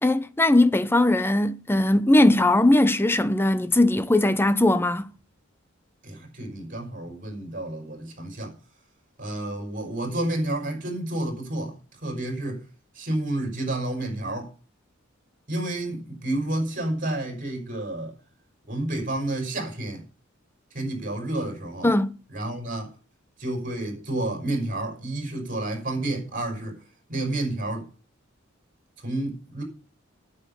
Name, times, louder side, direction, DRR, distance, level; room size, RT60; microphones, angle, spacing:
voice 1, 0.0-5.1 21.8-22.2, left 1 dB, 10° left, 0.7 m, -20 dB
voice 2, 6.0-8.5 9.2-12.6 12.9-14.5 15.5-18.2 18.7-20.0 20.7-21.9 22.3-22.9 23.4-26.8 27.1-27.9 29.0-29.6, right 1 dB, 45° right, 5.0 m, -30 dB
9.7 x 8.2 x 6.8 m
head